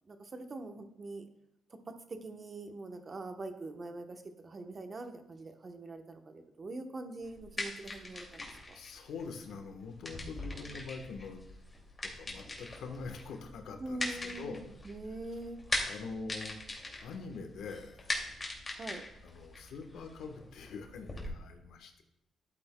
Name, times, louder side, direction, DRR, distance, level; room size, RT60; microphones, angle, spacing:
voice 1, 0.1-1.3 1.7-8.8 13.8-15.6 18.8-19.0, right 2 dB, 35° right, 6 dB, 1.0 m, -43 dB
sound 1, 7.2-21.3, left 2 dB, 25° left, 2.4 m, -41 dB
voice 2, 8.7-11.4 12.0-14.6 15.0-15.1 15.9-16.6 17.0-18.1 19.2-22.0, left 4 dB, 80° left, 5 dB, 1.2 m, -44 dB
11.5 x 8.6 x 2.2 m, 0.85 s
cardioid pair, 85°, 0 cm